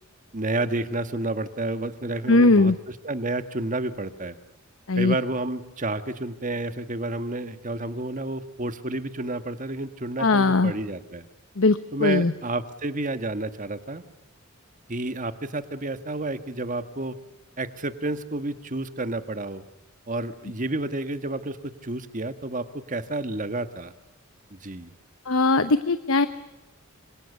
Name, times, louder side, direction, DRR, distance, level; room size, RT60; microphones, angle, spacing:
voice 1, 0.3-4.4 5.0-11.3 11.9-14.0 14.9-17.2 17.6-19.6 20.1-23.9 24.6-24.9, right 2 dB, 40° right, 10 dB, 1.6 m, -30 dB
voice 2, 2.3-2.7 4.9-5.2 10.2-10.7 11.6-12.3 25.3-26.3, left 3 dB, 80° left, 12 dB, 1.0 m, -19 dB
26.5 x 25.5 x 6.9 m, 1.0 s
head